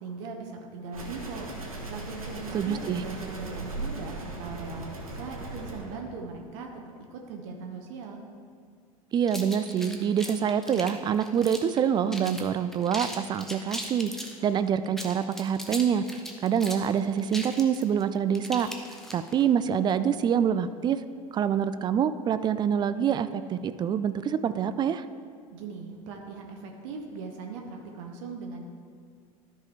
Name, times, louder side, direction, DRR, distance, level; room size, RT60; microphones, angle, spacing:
voice 1, 0.0-1.5 1.9-6.7 7.1-8.2 25.5-28.7, right 4 dB, 55° right, 2 dB, 1.0 m, -39 dB
sound 1, 0.9-6.0, right 2 dB, 75° right, 1.3 m, -38 dB
voice 2, 2.5-3.0 9.1-14.1 14.4-16.0 16.4-18.7 19.1-21.0 21.3-25.0, right 8 dB, 25° right, 12 dB, 0.3 m, -26 dB
sound 2, 9.3-11.8 12.1-12.4 12.7-14.4 14.8-19.4, equal, ahead, 0.9 m, -38 dB
13.0 x 5.4 x 3.3 m, 2.1 s
figure-of-eight pair, 75°, 18 cm